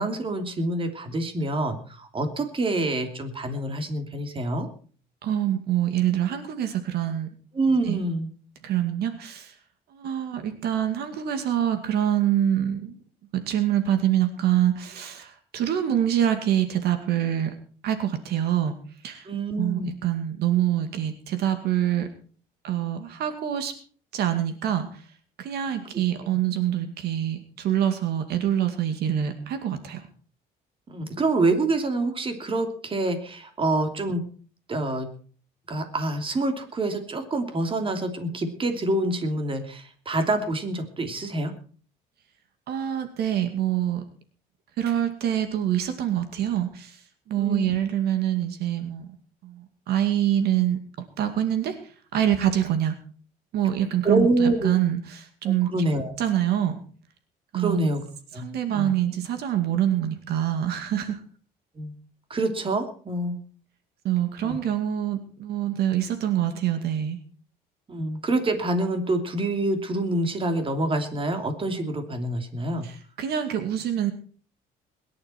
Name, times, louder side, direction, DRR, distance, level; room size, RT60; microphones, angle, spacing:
voice 1, 0.0-4.7 7.5-8.3 19.2-19.9 30.9-34.2 34.7-35.1 35.7-41.5 47.4-47.8 54.0-54.8 55.7-56.1 57.5-58.0 58.3-58.5 58.7-58.9 61.7-61.9 62.3-63.4 64.4-64.6 67.9-72.9, right 2 dB, 30° right, 7 dB, 3.0 m, -26 dB
voice 2, 5.2-7.3 7.9-8.0 8.6-9.6 9.9-13.0 13.3-17.5 17.8-18.8 19.0-19.3 19.6-22.1 22.6-23.8 24.1-25.0 25.4-30.0 42.7-44.0 44.8-49.1 49.4-50.8 51.2-53.0 53.5-55.7 56.2-56.8 57.5-57.8 58.4-61.2 64.0-67.2 72.8-74.1, right 11 dB, 70° right, 9 dB, 2.2 m, -25 dB
21.5 x 11.0 x 4.5 m, 0.43 s
cardioid pair, 110°, 17 cm